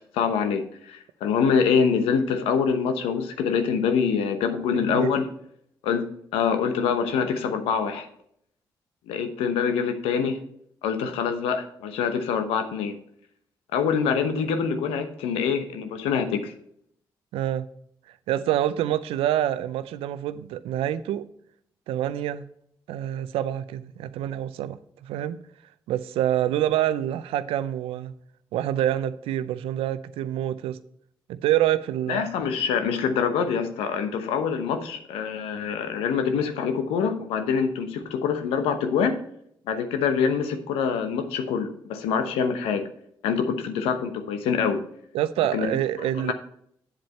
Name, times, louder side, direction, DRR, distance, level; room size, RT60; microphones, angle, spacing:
voice 1, 0.1-5.3 5.8-6.1 6.3-8.1 9.1-10.4 10.8-13.0 13.7-16.5 32.1-39.2 39.7-42.8 43.2-44.8 45.5-46.3, left 6 dB, 85° left, 0.9 m, -25 dB
voice 2, 4.7-5.1 17.3-17.7 18.1-21.2 21.9-22.5 22.9-25.4 25.9-28.1 28.5-30.8 31.3-32.3 45.1-46.3, right 12 dB, 80° right, 0.5 m, -26 dB
8.8 x 7.7 x 4.3 m
hypercardioid pair, 40°, 9 cm